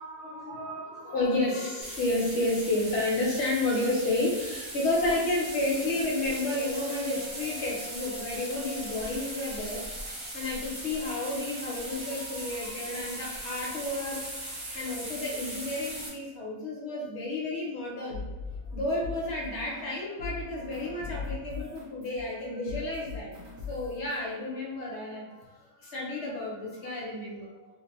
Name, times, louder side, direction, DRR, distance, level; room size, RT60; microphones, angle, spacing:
voice 1, 0.0-18.2 18.7-27.7, left 2 dB, 60° left, -4 dB, 0.8 m, -31 dB
sound 1, 1.8-16.1, right 1 dB, 45° right, 0.3 m, -39 dB
sound 2, 18.1-19.9 20.2-24.2, left 4 dB, 65° right, 1.0 m, -39 dB
2.8 x 2.1 x 2.9 m, 1.0 s
omnidirectional pair, 1.6 m